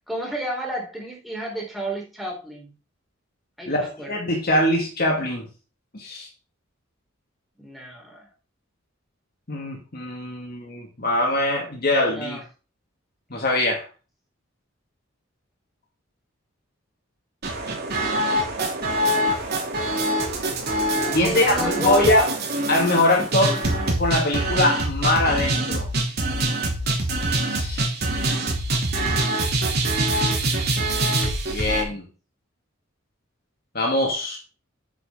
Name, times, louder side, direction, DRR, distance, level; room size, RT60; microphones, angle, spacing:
voice 1, 0.1-2.7 3.6-4.1 7.6-8.3 12.0-12.4 21.2-22.4 23.1-23.4 30.4-31.1, equal, ahead, -2 dB, 4.0 m, -31 dB
voice 2, 3.7-5.4 5.9-6.3 9.5-12.4 13.3-13.9 21.1-22.2 22.7-23.6 24.0-25.9 27.5-27.9 31.5-32.0 33.7-34.4, left 1 dB, 50° left, 0 dB, 2.2 m, -22 dB
sound 1, 17.4-31.8, right 1 dB, 55° right, 3.1 m, -24 dB
8.7 x 8.7 x 3.8 m, 0.34 s
head